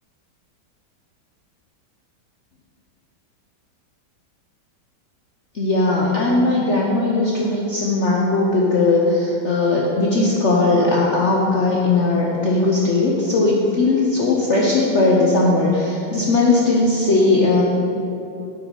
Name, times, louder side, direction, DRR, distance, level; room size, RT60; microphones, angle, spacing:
voice 1, 5.5-17.6, left 2 dB, 65° left, -3 dB, 0.7 m, -18 dB
8.5 x 4.9 x 5.4 m, 2.8 s
omnidirectional pair, 2.2 m